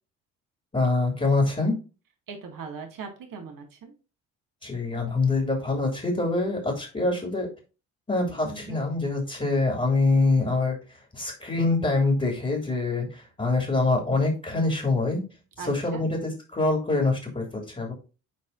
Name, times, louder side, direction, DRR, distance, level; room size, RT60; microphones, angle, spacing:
voice 1, 0.7-1.7 4.6-7.5 8.1-10.8 11.1-15.2 15.6-17.9, left 3 dB, 15° left, 1 dB, 2.6 m, -25 dB
voice 2, 2.3-3.9 8.4-8.9 15.6-16.0, right 5 dB, 50° right, 3 dB, 2.0 m, -40 dB
10.0 x 4.1 x 2.6 m, 0.33 s
hypercardioid pair, 50°, 42 cm